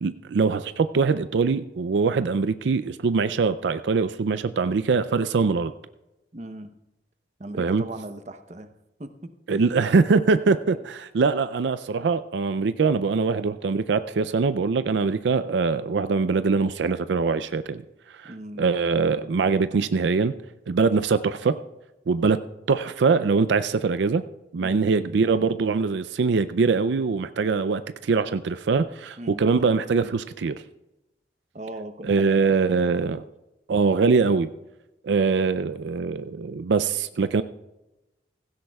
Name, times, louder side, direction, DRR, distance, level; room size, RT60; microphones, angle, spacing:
voice 1, 0.0-5.7 7.6-7.8 9.5-17.8 18.1-18.3 18.6-20.3 20.7-21.6 22.1-22.4 22.7-24.2 24.5-30.6 32.0-33.2 33.7-34.5 35.0-37.4, right 4 dB, 80° right, 12 dB, 0.4 m, -23 dB
voice 2, 6.3-6.7 7.4-8.7 9.0-9.1 9.5-9.6 10.5-10.8 18.3-18.7 24.6-24.9 29.2-29.4 31.5-33.1, right 1 dB, 40° right, 8 dB, 0.8 m, -39 dB
16.0 x 16.0 x 2.3 m, 0.97 s
head